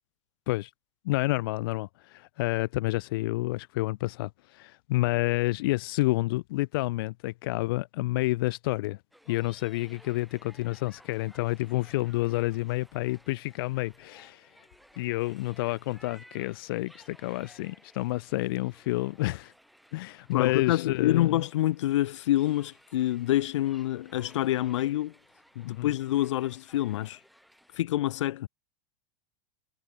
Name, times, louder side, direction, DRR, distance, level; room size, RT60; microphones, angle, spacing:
voice 1, 1.0-9.0 9.3-14.5 15.0-19.5 19.9-21.4 25.7-25.9, left 19 dB, 50° left, 0.6 m, -29 dB
sound 1, 9.1-27.8, equal, ahead, 4.9 m, -58 dB
voice 2, 20.3-25.1 25.5-27.2 27.8-28.5, left 14 dB, 80° left, 1.1 m, -27 dB
supercardioid pair, 175°, 15 cm